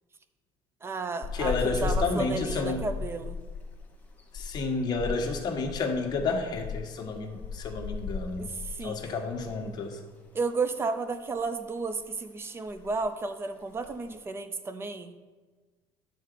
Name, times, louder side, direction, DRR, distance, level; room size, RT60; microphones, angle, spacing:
voice 1, 0.8-3.4 8.4-9.0 10.3-15.2, right 3 dB, 20° right, 10 dB, 0.5 m, -33 dB
sound 1, 1.2-9.7 10.0-10.2 10.6-11.5 11.8-12.1 12.4-12.5 12.7-13.1 13.7-14.2, left 4 dB, 15° left, 1.0 m, -37 dB
voice 2, 1.3-2.9 4.3-8.5 8.8-10.0, left 3 dB, 40° left, 2 dB, 1.2 m, -30 dB
9.9 x 3.8 x 6.7 m, 1.4 s
cardioid pair, 145°, 11 cm